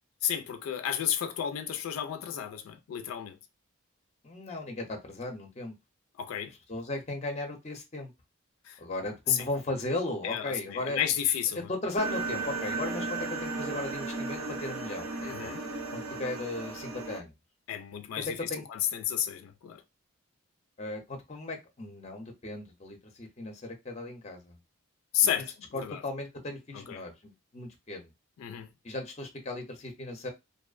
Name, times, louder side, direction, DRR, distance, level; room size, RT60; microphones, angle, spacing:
voice 1, 0.2-3.4 6.2-6.5 8.6-8.8 9.3-9.5 10.2-11.7 15.2-15.6 17.7-19.8 25.1-26.0 26.7-27.0 28.4-28.7, left 10 dB, 90° left, 0.3 m, -32 dB
voice 2, 4.2-5.7 6.7-8.1 8.8-11.0 11.5-15.1 15.4-15.5 15.9-17.3 18.2-18.6 20.8-24.6 25.7-28.1 28.8-30.3, left 2 dB, 35° left, 0.6 m, -36 dB
sound 1, 12.0-17.2, right 3 dB, 90° right, 0.5 m, -35 dB
2.6 x 2.0 x 2.4 m
head